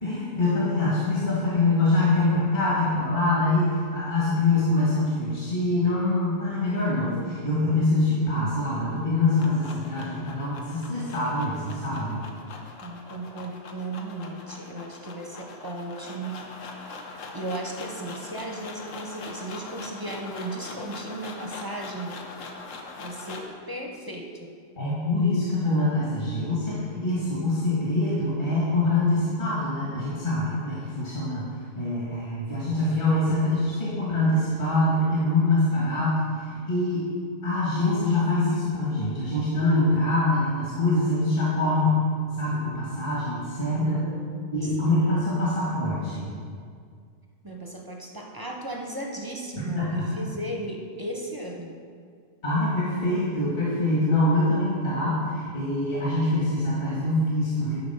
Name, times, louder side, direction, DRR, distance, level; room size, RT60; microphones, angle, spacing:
voice 1, 0.0-12.2 24.8-31.5 31.8-37.1 37.4-42.0 42.4-44.0 44.5-46.3 49.5-50.1 52.4-57.8, left 2 dB, 40° left, -7 dB, 1.6 m, -24 dB
sound 1, 9.0-23.6, left 3 dB, 85° left, 1.2 m, -42 dB
voice 2, 12.8-16.5 16.9-17.0 17.3-22.2 23.0-24.5 43.7-45.2 47.4-51.8, right 1 dB, 25° right, 0 dB, 0.5 m, -36 dB
10.0 x 4.1 x 5.5 m, 2.1 s
omnidirectional pair, 1.3 m